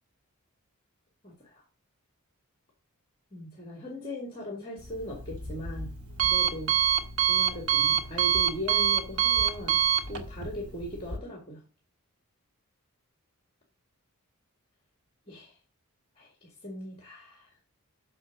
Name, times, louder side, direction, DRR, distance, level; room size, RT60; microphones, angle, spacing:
voice 1, 1.2-1.6 3.3-5.9 6.2-7.0 7.3-9.8 10.1-11.6 15.3-15.6 16.2-17.5, equal, 25° left, 0 dB, 2.0 m, -39 dB
Alarm, 4.8-11.2, right 9 dB, 90° right, 1.6 m, -27 dB
6.3 x 6.2 x 6.0 m, 0.34 s
head